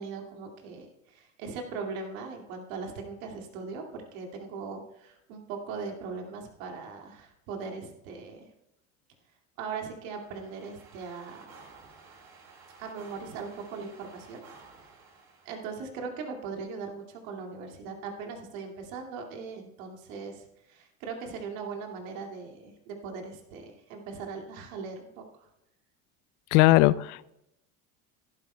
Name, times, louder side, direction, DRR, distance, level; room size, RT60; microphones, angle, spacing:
voice 1, 0.0-8.5 9.6-11.5 12.8-14.4 15.5-25.5, right 5 dB, 75° right, 2 dB, 2.4 m, -39 dB
sound 1, 10.0-15.7, right 4 dB, 60° right, 4.2 m, -53 dB
voice 2, 26.5-27.3, left 18 dB, 65° left, 18 dB, 0.6 m, -20 dB
15.0 x 12.0 x 2.3 m, 0.87 s
hypercardioid pair, 75°, 41 cm